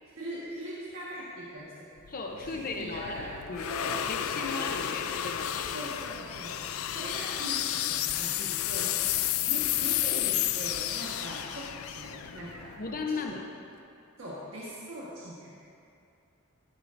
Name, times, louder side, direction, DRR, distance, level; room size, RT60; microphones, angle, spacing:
voice 1, 0.0-1.9 2.5-3.3 3.7-4.0 4.4-5.0 5.7-6.6 6.9-8.9 9.4-12.7 13.1-13.4 14.2-15.5, right 1 dB, 65° right, -7 dB, 1.4 m, -41 dB
sound 1, 2.0-13.3, left 12 dB, 75° left, 0.4 m, -32 dB
voice 2, 2.1-3.7 4.1-5.9 8.4-8.6 12.8-13.5, left 4 dB, 40° left, 3 dB, 0.7 m, -36 dB
13.0 x 9.3 x 2.6 m, 2.6 s
head